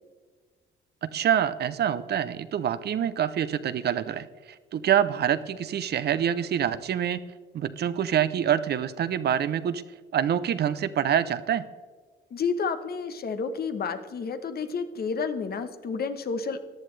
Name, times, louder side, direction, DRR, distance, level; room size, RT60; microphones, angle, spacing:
voice 1, 1.0-4.3 4.7-7.2 7.5-9.8 10.1-11.6, right 9 dB, 55° right, 13 dB, 0.6 m, -26 dB
voice 2, 12.3-16.6, left 5 dB, 50° left, 9 dB, 0.9 m, -30 dB
14.0 x 10.5 x 3.2 m, 1.5 s
cardioid pair, 90°, 20 cm